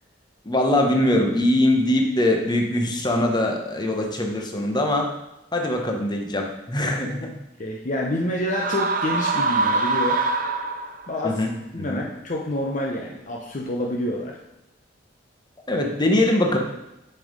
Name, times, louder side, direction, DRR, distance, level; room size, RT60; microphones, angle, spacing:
voice 1, 0.4-5.1 5.5-7.3 11.2-11.5 11.8-12.0 15.7-16.6, left 1 dB, 25° left, 2 dB, 1.0 m, -22 dB
voice 2, 7.6-10.2 11.1-11.4 11.7-14.3, left 1 dB, 40° left, -1 dB, 0.8 m, -27 dB
sound 1, 8.5-11.1, right 3 dB, 45° right, 0.6 m, -23 dB
6.7 x 5.5 x 5.1 m, 0.88 s
head